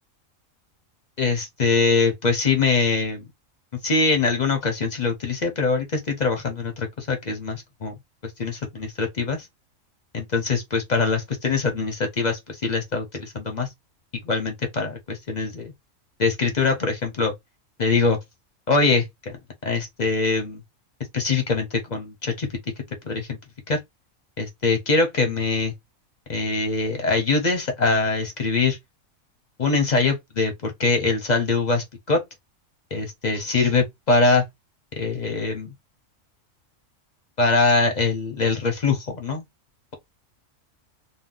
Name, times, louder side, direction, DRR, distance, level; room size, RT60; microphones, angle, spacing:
voice 1, 1.2-3.2 3.8-7.9 8.4-9.5 10.1-13.7 14.2-15.7 16.2-17.3 17.8-18.2 18.7-19.4 19.6-20.6 21.1-22.5 23.0-23.4 23.7-23.8 24.4-25.7 26.3-28.8 29.6-32.2 32.9-34.4 35.0-35.7 37.4-39.4, left 4 dB, 45° left, 0.6 m, -23 dB
2.6 x 2.0 x 3.6 m
omnidirectional pair, 1.5 m